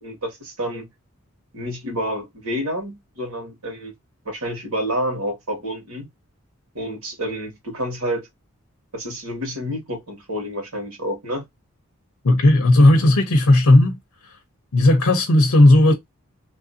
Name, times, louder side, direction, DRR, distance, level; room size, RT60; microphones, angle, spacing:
voice 1, 0.0-0.9 1.5-3.9 4.3-6.1 6.7-8.3 8.9-11.4, equal, 90° right, 1.8 m, -29 dB
voice 2, 12.2-14.0 14.7-15.9, left 1 dB, 85° left, 0.7 m, -14 dB
3.1 x 2.7 x 2.6 m
head